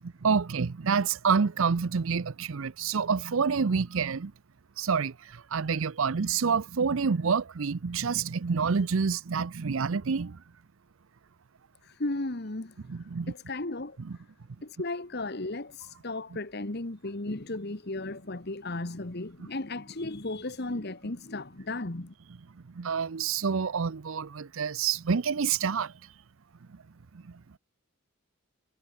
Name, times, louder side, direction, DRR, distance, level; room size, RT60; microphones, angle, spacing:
voice 1, 0.2-4.3 4.8-10.4 12.9-13.3 14.0-14.2 22.6-25.9 26.7-26.8 27.1-27.4, right 5 dB, 65° right, 0.6 m, -28 dB
voice 2, 11.8-12.8 13.3-14.0 14.6-22.1, left 2 dB, 50° left, 1.4 m, -35 dB
head